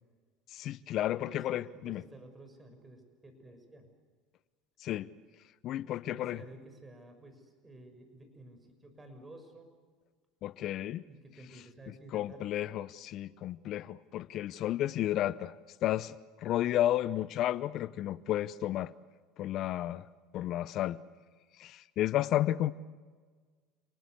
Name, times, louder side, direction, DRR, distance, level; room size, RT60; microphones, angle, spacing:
voice 1, 0.5-2.0 4.8-5.1 5.6-6.4 10.4-11.0 12.1-15.5 15.8-16.1 16.4-18.9 19.4-20.1 20.3-21.0 21.6-22.7, left 13 dB, 55° left, 17 dB, 0.8 m, -32 dB
voice 2, 1.1-1.4 1.7-3.9 6.1-9.7 11.1-12.4, right 1 dB, 20° right, 7 dB, 6.5 m, -52 dB
30.0 x 19.5 x 8.1 m, 1.5 s
hypercardioid pair, 80°, 0 cm